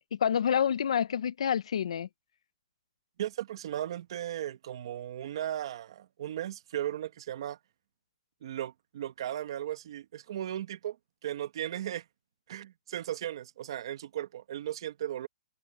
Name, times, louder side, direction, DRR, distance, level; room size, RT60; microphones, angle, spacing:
voice 1, 0.0-2.1, left 8 dB, 75° left, 0.5 m, -28 dB
voice 2, 3.2-7.6 8.4-11.0 11.2-12.0 12.5-15.3, right 11 dB, 55° right, 1.5 m, -36 dB
hypercardioid pair, 165°, 3 cm